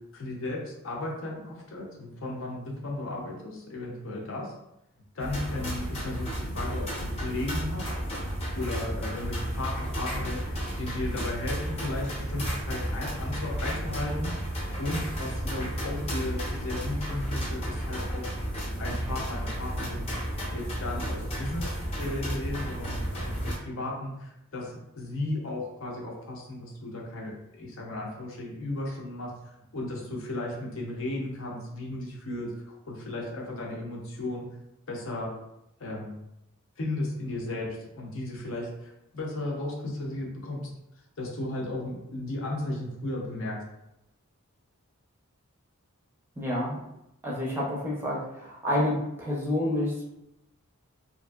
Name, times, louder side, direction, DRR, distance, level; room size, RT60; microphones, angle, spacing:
voice 1, 0.1-4.5 5.1-7.9 8.5-18.5 18.8-20.1 20.5-34.4 34.9-35.3 35.8-36.1 36.8-37.7 38.0-40.7 41.2-43.6, left 2 dB, 65° left, -1 dB, 0.6 m, -35 dB
sound 1, 5.2-23.6, equal, 30° left, 0.7 m, -32 dB
voice 2, 46.4-46.8 47.2-50.0, left 1 dB, 10° right, -4 dB, 0.5 m, -29 dB
2.9 x 2.5 x 2.3 m, 0.87 s
head